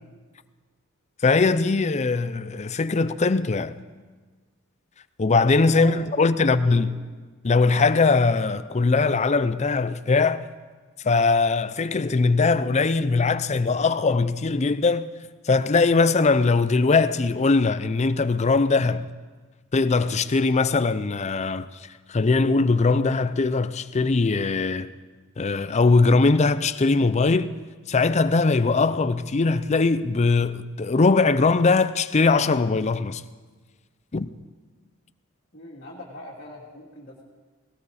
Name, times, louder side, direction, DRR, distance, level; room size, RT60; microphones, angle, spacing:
voice 1, 1.2-3.7 5.2-6.9 7.4-10.4 11.0-15.1 15.4-19.1 19.7-21.7 22.1-24.9 25.4-27.5 27.9-33.2 34.1-34.3, left 3 dB, 30° left, 0.5 m, -21 dB
voice 2, 6.4-7.1 35.5-37.2, left 2 dB, 45° left, 2.7 m, -41 dB
18.5 x 18.5 x 4.2 m
head